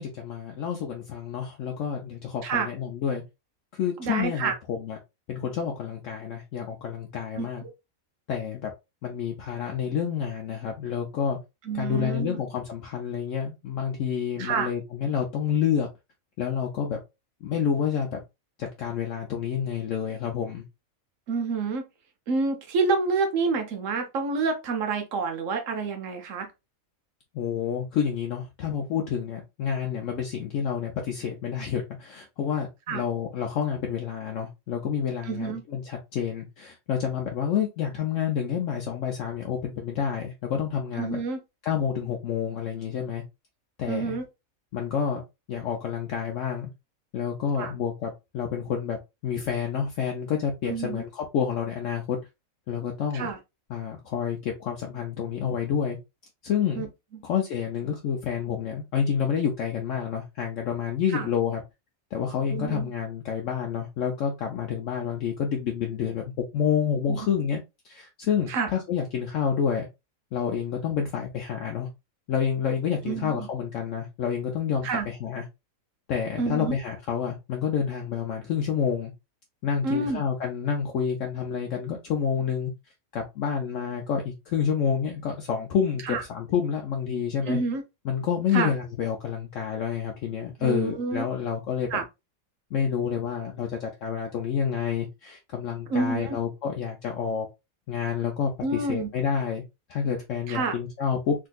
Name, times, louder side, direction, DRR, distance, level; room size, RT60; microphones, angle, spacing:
voice 1, 0.0-3.2 3.7-5.0 5.3-7.6 8.3-8.7 9.0-11.4 11.7-15.9 16.4-17.0 17.4-18.2 18.6-20.6 27.3-41.2 41.6-43.2 43.8-44.2 44.7-45.2 45.5-46.7 47.1-49.0 49.2-52.2 52.7-53.3 53.7-56.0 56.4-56.8 57.2-61.6 62.1-67.6 67.8-69.9 70.3-71.9 72.3-75.4 76.1-79.1 79.6-82.7 83.1-87.6 88.0-91.9 92.7-97.5 97.9-99.6 99.9-101.3, left 7 dB, 70° left, 0.9 m, -29 dB
voice 2, 4.0-4.6 7.3-7.7 11.6-12.4 14.4-14.7 21.3-21.8 22.3-26.5 32.9-33.0 35.2-35.6 40.9-41.4 43.9-44.3 47.6-47.7 50.7-51.0 53.1-53.4 56.8-56.9 57.1-57.2 61.1-61.3 62.5-62.9 67.1-67.2 68.5-68.7 73.0-73.5 74.8-75.1 76.4-76.7 79.8-80.2 86.0-86.2 87.5-87.8 88.5-88.7 90.6-91.2 91.9-92.0 95.9-96.4 98.6-99.1 100.5-100.8, right 4 dB, 70° right, 1.1 m, -28 dB
3.5 x 2.6 x 2.3 m
omnidirectional pair, 1.5 m